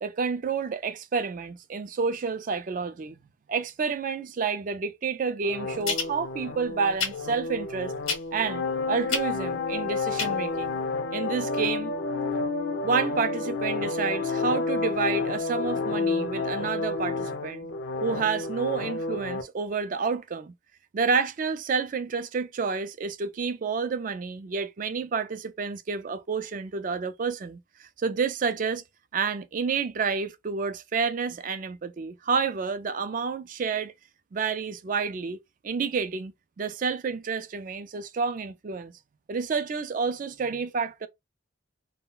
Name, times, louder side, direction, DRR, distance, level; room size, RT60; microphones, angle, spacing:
voice 1, 0.0-3.2 3.5-7.9 8.3-10.8 11.1-11.9 12.8-17.7 18.0-20.5 20.9-28.8 29.1-33.9 34.3-35.4 35.6-36.3 36.6-38.9 39.3-41.1, right 5 dB, 40° right, 0.3 m, -29 dB
sound 1, 5.4-19.4, left 3 dB, 65° left, 0.4 m, -30 dB
sound 2, 5.8-6.1 7.0-7.2 8.0-8.4 9.1-9.3 10.2-10.3 10.6-10.7, left 5 dB, 85° left, 0.8 m, -28 dB
2.3 x 2.1 x 3.7 m
head